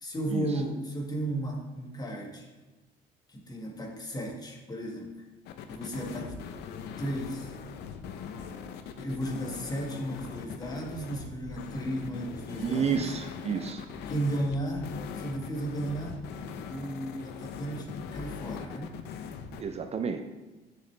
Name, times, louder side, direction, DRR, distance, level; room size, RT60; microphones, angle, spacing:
voice 1, 0.0-2.5 3.3-5.1 5.7-6.4 7.0-7.6 9.0-13.2 14.1-16.2 16.7-18.9, right 1 dB, 25° left, 1 dB, 1.7 m, -34 dB
sound 1, 5.5-19.6, left 7 dB, 85° left, 0.7 m, -41 dB
voice 2, 12.6-13.9 19.6-20.2, right 6 dB, 40° right, 7 dB, 0.6 m, -30 dB
9.7 x 6.5 x 3.4 m, 1.2 s
cardioid pair, 110°, 17 cm